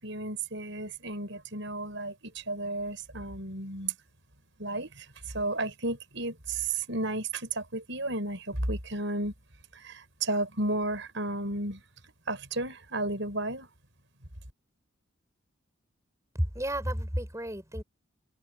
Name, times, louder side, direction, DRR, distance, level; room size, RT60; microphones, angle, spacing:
voice 1, 0.0-3.9 4.6-5.1 5.3-9.3 9.7-11.8 12.3-13.7, right 2 dB, 60° right, 7.3 m, -33 dB
voice 2, 16.3-17.8, equal, 15° right, 7.5 m, -31 dB
head